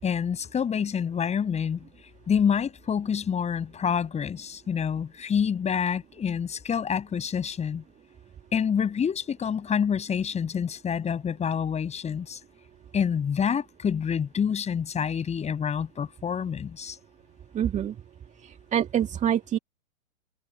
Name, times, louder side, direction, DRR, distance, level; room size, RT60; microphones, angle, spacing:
voice 1, 0.0-1.8 2.3-7.8 8.5-12.4 12.9-17.0, left 7 dB, 15° left, 7.4 m, -27 dB
voice 2, 17.5-17.9 18.4-19.6, right 10 dB, 15° right, 2.2 m, -26 dB
figure-of-eight pair, 115°, 42 cm